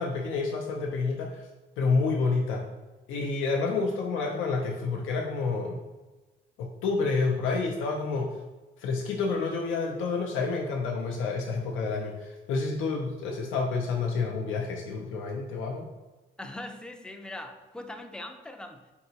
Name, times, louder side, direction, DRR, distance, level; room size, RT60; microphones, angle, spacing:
voice 1, 0.0-1.4 1.8-2.7 3.1-5.8 6.6-8.4 8.8-15.9, left 4 dB, 85° left, 0 dB, 0.5 m, -29 dB
voice 2, 16.4-18.9, left 1 dB, 5° left, 5 dB, 0.4 m, -41 dB
4.5 x 2.9 x 2.8 m, 1.2 s
cardioid pair, 90°, 20 cm